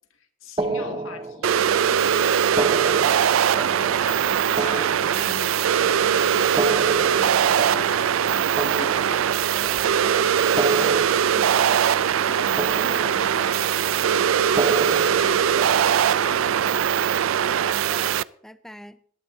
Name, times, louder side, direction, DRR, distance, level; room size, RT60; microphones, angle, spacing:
voice 1, 0.1-9.3 11.3-17.0, left 2 dB, 85° left, 2.2 m, -40 dB
sound 1, 0.6-1.8 2.5-5.8 6.4-9.7 10.4-12.3 12.6-13.6 14.4-16.3, right 2 dB, 25° right, 0.8 m, -31 dB
sound 2, 1.4-18.2, right 8 dB, 80° right, 0.4 m, -21 dB
voice 2, 9.5-11.0 11.3-11.5 17.7-19.0, equal, ahead, 0.4 m, -45 dB
19.0 x 12.0 x 2.7 m
head